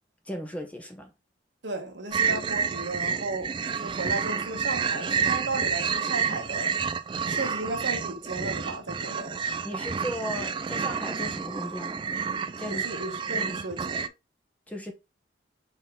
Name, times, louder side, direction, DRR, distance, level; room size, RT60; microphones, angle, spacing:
voice 1, 0.2-1.1 9.6-12.0 12.6-13.1 13.3-13.5 14.7-14.9, equal, 10° left, 0.8 m, -36 dB
voice 2, 1.6-6.7 7.3-9.4 12.6-14.1, right 2 dB, 80° right, 1.3 m, -35 dB
sound 1, 2.1-14.1, right 6 dB, 25° right, 0.3 m, -29 dB
4.1 x 3.7 x 3.5 m
head